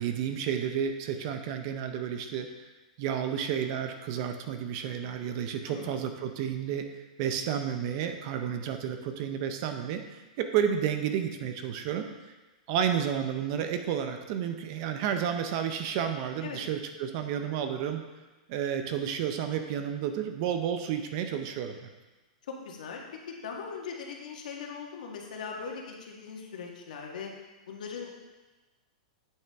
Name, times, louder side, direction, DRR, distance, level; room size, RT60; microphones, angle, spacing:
voice 1, 0.0-2.5 3.0-6.9 7.2-12.1 12.7-18.0 18.5-21.9, right 8 dB, 35° right, 7 dB, 0.6 m, -31 dB
voice 2, 5.7-6.0 16.4-16.6 22.5-27.3 27.7-28.2, left 5 dB, 75° left, 0 dB, 1.5 m, -40 dB
8.5 x 6.2 x 3.5 m, 1.2 s
supercardioid pair, 170°, 4 cm